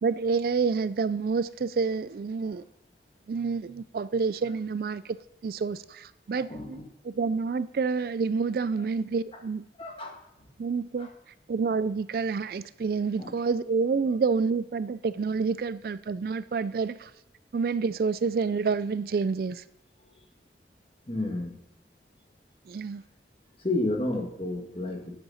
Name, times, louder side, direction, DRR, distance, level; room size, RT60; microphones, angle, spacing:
voice 1, 0.0-2.6 3.3-5.2 5.4-9.7 10.6-11.1 11.5-17.1 17.5-19.6 22.7-23.0, right 5 dB, 55° right, 0.3 m, -28 dB
voice 2, 6.4-6.8 9.8-10.2 11.0-11.1 13.2-13.3 20.0-20.2 21.1-21.5 23.6-25.1, left 2 dB, 30° left, 1.8 m, -31 dB
9.0 x 7.8 x 5.6 m
head